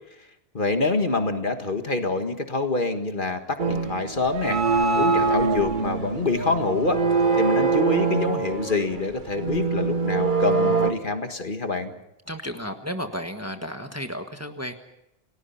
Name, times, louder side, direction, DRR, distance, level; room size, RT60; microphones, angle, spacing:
voice 1, 0.5-4.6 4.9-7.0 7.4-11.9, left 3 dB, 50° left, 7 dB, 1.9 m, -26 dB
sound 1, 3.6-10.9, right 4 dB, 50° right, 1.3 m, -23 dB
voice 2, 12.3-14.7, equal, 15° right, 6 dB, 1.4 m, -33 dB
29.0 x 19.0 x 5.7 m, 0.86 s
omnidirectional pair, 1.1 m